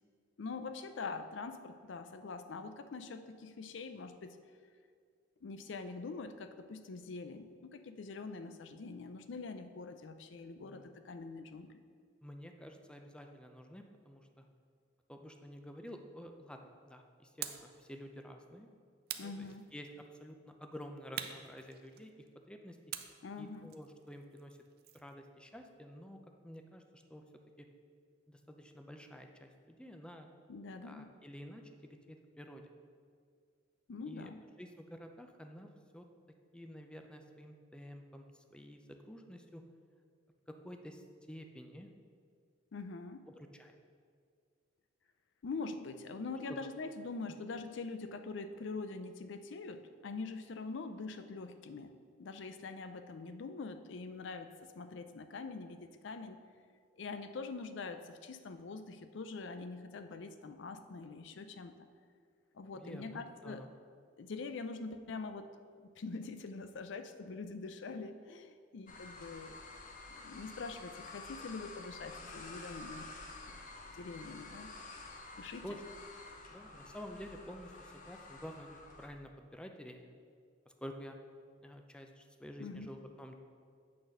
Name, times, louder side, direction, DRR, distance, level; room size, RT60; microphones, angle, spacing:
voice 1, 0.4-4.4 5.4-11.8 19.2-19.7 23.2-23.8 30.5-31.2 33.9-34.4 42.7-43.3 45.4-51.9 52.2-56.4 57.0-61.7 62.5-63.7 64.2-65.5 65.8-69.6 70.1-73.1 73.4-73.6 73.9-74.7 75.4-75.7 82.6-82.9, left 4 dB, 70° left, 9 dB, 0.5 m, -44 dB
voice 2, 10.6-10.9 12.2-14.4 15.1-16.6 16.9-18.7 19.2-19.9 20.2-22.1 22.5-22.8 23.4-24.6 24.9-26.2 26.4-27.2 27.6-27.7 28.3-30.3 30.8-32.6 34.1-34.3 34.6-35.7 35.9-36.0 36.5-39.6 40.5-41.9 43.4-43.8 46.5-46.6 62.7-63.7 75.6-75.8 76.5-78.7 79.0-80.1 80.7-81.2 81.6-83.3, equal, 5° left, 4 dB, 0.5 m, -50 dB
sound 1, 17.4-17.8 19.1-20.0 21.2-22.3 22.9-25.1, right 10 dB, 55° right, 0.5 m, -45 dB
sound 2, 68.9-79.1, left 3 dB, 45° left, 0.8 m, -50 dB
8.6 x 4.1 x 6.5 m, 2.1 s
head